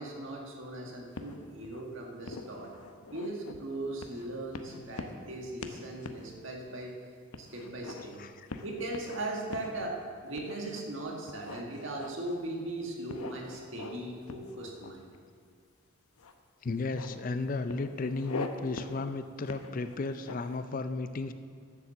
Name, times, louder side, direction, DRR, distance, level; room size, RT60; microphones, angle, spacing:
voice 1, 0.0-2.7 3.1-7.0 7.4-8.2 8.6-10.0 10.2-15.0, right 1 dB, 60° right, 0 dB, 1.9 m, -38 dB
sound 1, 1.1-1.8 2.2-3.6 4.0-4.3 4.5-5.3 5.6-5.8 6.0-6.2 6.7-6.8 7.3-8.1 8.5-9.2 9.5-9.7 10.3-10.8 11.3-12.4 13.1-14.0 14.3-15.2 16.2-16.3 16.6-17.2 17.7-18.5 18.8-19.0 19.5-20.6, left 3 dB, 85° left, 0.8 m, -43 dB
voice 2, 8.2-8.6 16.6-21.3, left 3 dB, 40° left, 10 dB, 0.4 m, -34 dB
11.0 x 7.1 x 7.1 m, 2.2 s
head